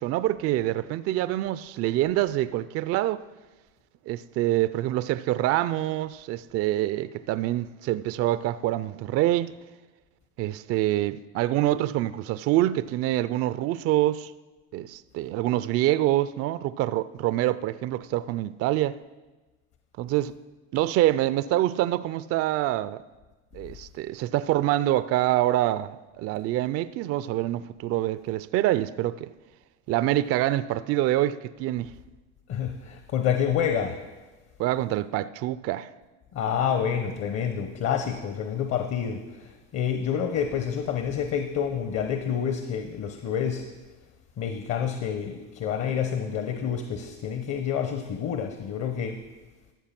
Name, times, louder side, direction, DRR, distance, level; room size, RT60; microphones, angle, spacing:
voice 1, 0.0-3.2 4.1-9.5 10.4-14.3 14.7-19.0 20.0-20.3 20.7-23.0 23.5-29.3 29.9-31.9 34.6-35.9, right 14 dB, 40° right, 0.4 m, -26 dB
voice 2, 32.5-34.0 36.3-43.6 44.4-49.2, left 8 dB, 45° left, 1.0 m, -28 dB
13.5 x 6.8 x 5.9 m
supercardioid pair, 100°, 36 cm